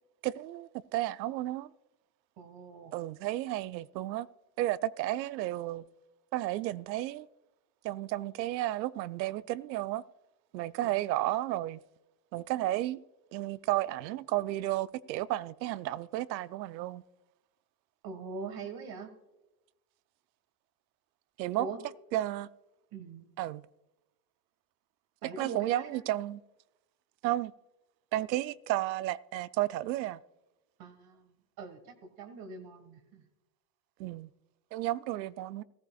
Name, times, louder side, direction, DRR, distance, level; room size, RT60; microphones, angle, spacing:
voice 1, 0.2-1.7 2.9-4.3 4.6-5.8 6.3-7.3 7.8-10.0 10.5-11.8 12.3-13.0 13.3-17.0 21.4-21.7 22.1-22.5 23.4-23.6 25.4-26.4 27.2-27.5 28.1-30.2 34.0-34.3 34.7-35.6, right 15 dB, 90° right, 0.6 m, -32 dB
voice 2, 2.4-2.9 10.8-11.1 18.0-19.1 21.6-21.8 22.9-23.3 25.2-26.0 30.8-33.2, right 4 dB, 45° right, 1.6 m, -43 dB
15.0 x 14.5 x 2.3 m
supercardioid pair, 115°, 50 cm